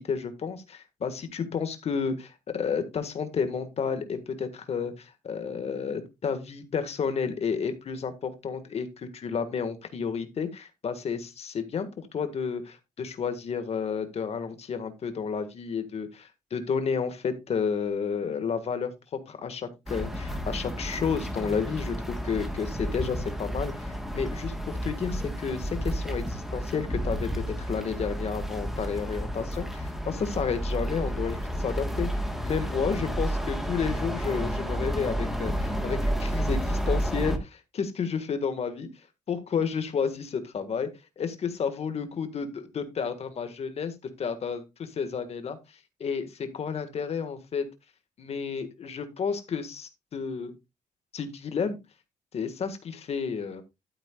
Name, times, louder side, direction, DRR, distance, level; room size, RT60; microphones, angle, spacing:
voice 1, 0.0-38.9 39.3-40.9 41.2-47.7 48.2-50.5 51.1-51.8 52.3-53.6, left 6 dB, 45° left, 9 dB, 1.7 m, -31 dB
sound 1, 19.9-37.4, equal, ahead, 1.3 m, -31 dB
12.0 x 8.9 x 2.4 m, 0.23 s
wide cardioid pair, 175°, 15 cm